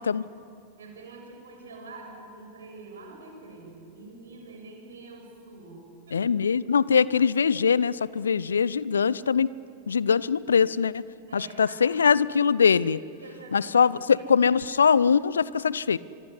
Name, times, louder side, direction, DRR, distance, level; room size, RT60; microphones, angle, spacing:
voice 1, 0.8-5.8 6.1-6.2 11.3-11.9 13.2-13.9, right 3 dB, 65° right, 2 dB, 7.0 m, -45 dB
voice 2, 6.1-9.5 9.9-11.0 11.3-13.0 13.5-16.0, left 6 dB, 70° left, 21 dB, 0.6 m, -22 dB
25.0 x 24.5 x 9.8 m, 2.6 s
figure-of-eight pair, 90°, 0 cm